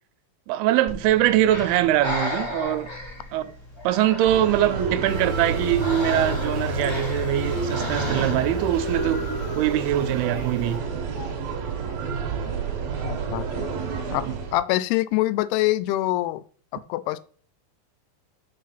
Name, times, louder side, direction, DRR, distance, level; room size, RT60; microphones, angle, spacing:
voice 1, 0.5-2.9 3.3-3.5 3.8-9.3 9.6-10.8 14.2-14.3, right 13 dB, 85° right, 2.6 m, -22 dB
Breathing, 0.9-8.7, left 2 dB, 30° left, 0.4 m, -34 dB
sound 1, 4.3-14.6, right 5 dB, 60° right, 1.9 m, -30 dB
sound 2, 5.1-10.8, left 3 dB, 70° left, 2.2 m, -35 dB
voice 2, 13.0-13.7 14.1-16.4 16.7-17.2, left 16 dB, 90° left, 2.6 m, -25 dB
5.7 x 4.8 x 5.9 m
omnidirectional pair, 4.5 m